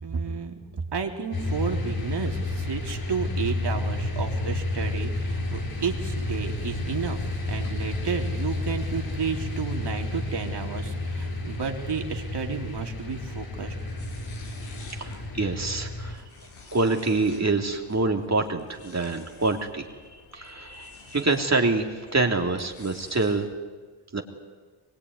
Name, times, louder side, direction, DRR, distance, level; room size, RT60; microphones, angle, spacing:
voice 1, 0.0-0.5 0.9-7.2 7.5-13.8, right 6 dB, 55° right, 3 dB, 3.6 m, -32 dB
sound 1, 1.3-16.1, left 2 dB, 45° left, 7.2 m, -31 dB
sound 2, 13.6-23.4, left 4 dB, 85° left, 7.0 m, -50 dB
voice 2, 14.9-16.2 16.7-19.9 20.3-23.5 24.1-24.2, right 3 dB, 35° right, 2 dB, 3.4 m, -26 dB
23.5 x 22.0 x 9.8 m, 1.3 s
supercardioid pair, 60°, 48 cm